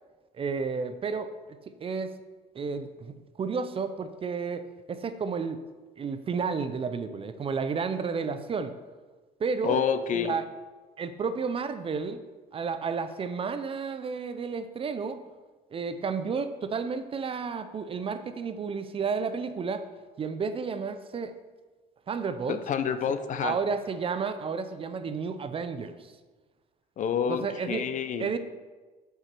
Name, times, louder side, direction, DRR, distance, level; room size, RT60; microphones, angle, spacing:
voice 1, 0.3-1.3 1.7-2.1 2.5-5.6 6.0-8.8 9.4-9.8 10.1-10.4 11.0-12.2 12.5-15.2 15.7-19.8 20.2-21.3 22.1-22.6 23.4-26.1 27.3-27.8 28.2-28.4, right 5 dB, 35° right, 11 dB, 0.5 m, -31 dB
voice 2, 9.6-10.3 22.5-23.5 27.0-28.3, left 7 dB, 50° left, 10 dB, 0.6 m, -28 dB
7.7 x 4.9 x 4.5 m, 1.3 s
cardioid pair, 110°, 17 cm